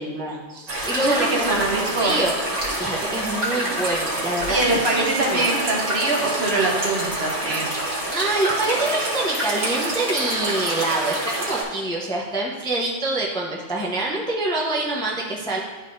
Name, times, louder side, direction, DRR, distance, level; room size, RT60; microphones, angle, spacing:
voice 1, 0.0-1.6 2.0-2.4 2.7-5.5 8.1-15.6, right 2 dB, 5° left, -2 dB, 0.5 m, -26 dB
sound 1, 0.7-11.6, right 1 dB, 90° right, 1.8 m, -27 dB
voice 2, 1.0-2.2 4.5-7.7, right 2 dB, 60° right, -1 dB, 1.3 m, -23 dB
11.0 x 4.0 x 2.6 m, 1.5 s
omnidirectional pair, 1.2 m